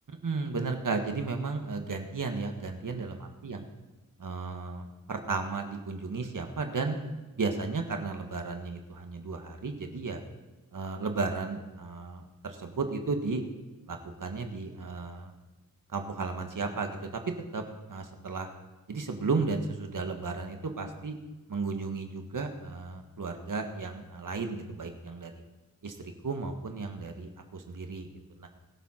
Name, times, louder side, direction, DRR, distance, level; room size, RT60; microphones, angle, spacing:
voice 1, 0.2-3.6 4.2-7.0 7.4-10.2 10.7-13.4 13.9-15.3 15.9-17.2 17.5-17.6 17.9-18.5 18.9-21.2 21.5-25.4 25.8-28.1 28.4-28.5, right 4 dB, 65° right, 5 dB, 1.7 m, -34 dB
21.5 x 7.5 x 4.4 m, 1.1 s
wide cardioid pair, 65°, 34 cm